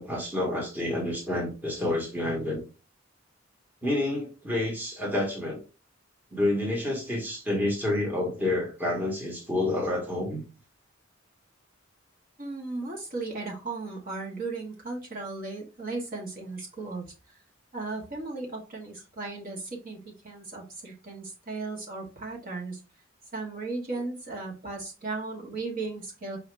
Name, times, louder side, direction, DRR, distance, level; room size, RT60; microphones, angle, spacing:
voice 1, 0.0-2.6 3.8-5.6 6.3-10.4, left 1 dB, 10° right, 1.1 m, -29 dB
voice 2, 12.4-17.1 17.7-22.8 23.3-26.4, right 3 dB, 45° right, 1.3 m, -36 dB
4.8 x 2.8 x 3.2 m
head